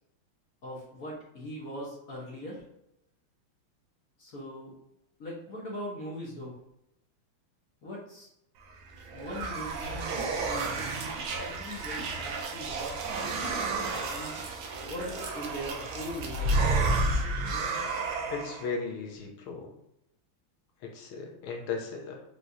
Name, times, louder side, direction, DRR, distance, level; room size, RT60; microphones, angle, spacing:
voice 1, 0.6-2.6 4.2-4.7 5.2-6.6 7.8-8.3 9.1-13.1 13.9-14.4 14.8-16.7, equal, 55° left, -4 dB, 1.1 m, -40 dB
sound 1, 8.7-18.7, right 2 dB, 75° right, 1.5 m, -31 dB
voice 2, 18.3-19.7 20.8-22.2, left 4 dB, 80° left, 2 dB, 1.6 m, -36 dB
4.9 x 3.1 x 2.7 m, 0.82 s
omnidirectional pair, 2.4 m